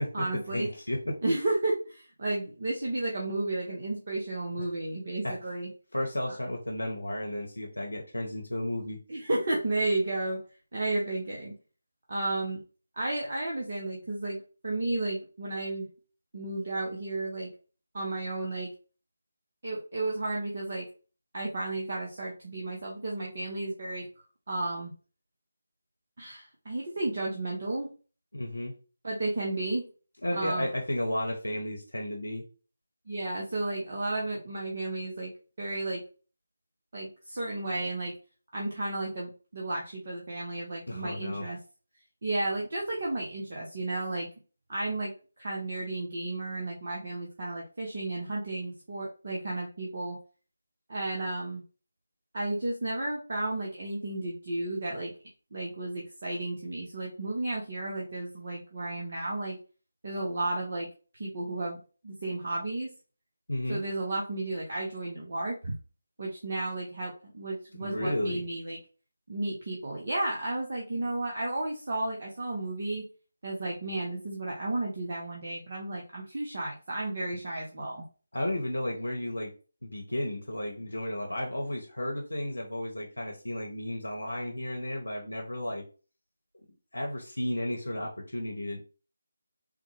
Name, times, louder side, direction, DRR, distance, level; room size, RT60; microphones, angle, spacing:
voice 1, 0.0-0.7 1.2-5.7 6.3-6.4 9.1-10.4 10.7-11.5 12.1-12.6 12.9-15.9 16.3-17.5 17.9-18.7 19.6-20.9 21.3-24.0 24.5-24.9 26.2-27.9 29.0-29.9 30.3-30.7 33.1-35.3 35.6-36.0 36.9-38.1 38.5-41.6 42.2-44.3 44.7-50.2 50.9-51.6 52.3-55.1 55.5-59.6 60.0-60.9 61.1-61.8 62.0-62.9 63.7-65.7 66.2-68.8 69.3-73.1 73.4-78.0, right 2 dB, 45° right, -2 dB, 0.7 m, -33 dB
voice 2, 0.5-1.2 5.2-5.4 5.9-9.0 28.3-28.7 30.2-32.4 40.9-41.5 63.5-63.8 67.8-68.4 78.3-79.5 79.8-85.8 86.9-88.8, left 1 dB, 75° left, 0 dB, 0.8 m, -33 dB
3.6 x 2.2 x 3.1 m, 0.36 s
figure-of-eight pair, 155°, 0 cm